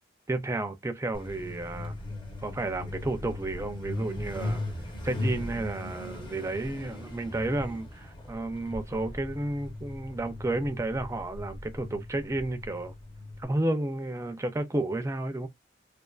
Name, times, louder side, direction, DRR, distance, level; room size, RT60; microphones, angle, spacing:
voice 1, 0.3-2.0 2.4-4.6 5.0-12.9 13.4-15.5, right 2 dB, 15° right, 0.4 m, -32 dB
Truck, 1.1-13.4, left 1 dB, 25° left, 0.6 m, -38 dB
2.4 x 2.4 x 2.3 m
head